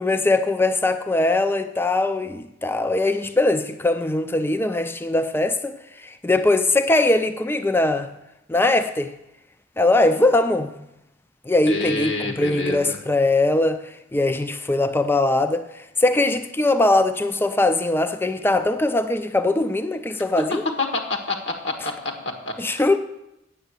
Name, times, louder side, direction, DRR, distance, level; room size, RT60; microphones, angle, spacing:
voice 1, 0.0-5.7 6.0-8.1 8.5-9.1 9.8-10.8 11.5-13.8 14.1-15.7 16.0-20.6 22.6-23.0, left 2 dB, 10° left, 0.4 m, -21 dB
voice 2, 11.6-13.0 20.4-22.5, left 3 dB, 65° left, 1.5 m, -27 dB
9.2 x 7.1 x 8.0 m
head